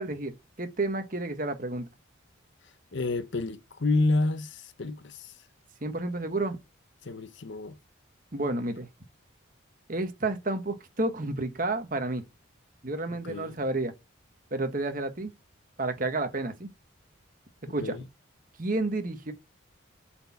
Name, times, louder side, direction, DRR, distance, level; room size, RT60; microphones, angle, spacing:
voice 1, 0.0-1.9 5.8-6.6 8.3-8.9 9.9-12.2 12.8-13.9 14.5-15.3 15.8-16.7 17.7-18.0 18.6-19.3, right 2 dB, 40° right, 1.3 m, -30 dB
voice 2, 2.9-5.3 7.0-7.8 13.1-13.6 17.8-18.1, left 2 dB, 60° left, 0.7 m, -29 dB
7.8 x 4.5 x 7.1 m
head